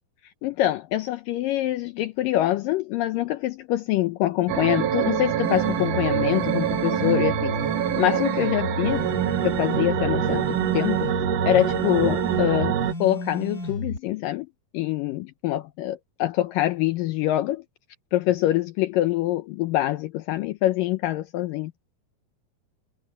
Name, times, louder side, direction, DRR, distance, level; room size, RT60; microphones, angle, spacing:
voice 1, 0.4-7.6 8.0-9.1 9.4-11.1 11.5-14.5 14.7-17.6 18.1-21.9, left 14 dB, 75° left, 2.3 m, -25 dB
sound 1, 4.5-12.9, right 12 dB, 80° right, 1.4 m, -25 dB
sound 2, 5.4-14.0, left 2 dB, 25° left, 4.4 m, -32 dB
omnidirectional pair, 4.2 m